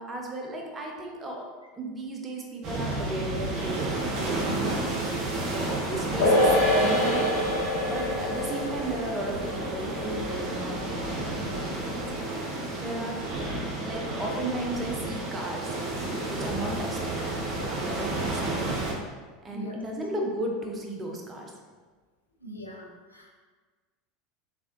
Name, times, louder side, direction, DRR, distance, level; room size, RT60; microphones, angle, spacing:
voice 1, 0.0-1.5 1.8-4.9 5.5-7.3 7.6-17.2 17.5-18.9 19.4-21.5, right 1 dB, 20° right, 1 dB, 0.7 m, -35 dB
sound 1, 2.6-18.9, right 2 dB, 40° right, 0.9 m, -31 dB
sound 2, 6.2-12.9 13.1-13.2, left 1 dB, 65° left, 1.4 m, -27 dB
sound 3, 6.4-12.7, left 2 dB, 30° left, 0.5 m, -44 dB
voice 2, 12.8-13.1 19.5-19.8 22.4-23.3, equal, 85° left, -1 dB, 0.5 m, -42 dB
3.6 x 3.3 x 2.6 m, 1.4 s
figure-of-eight pair, 80°, 0 cm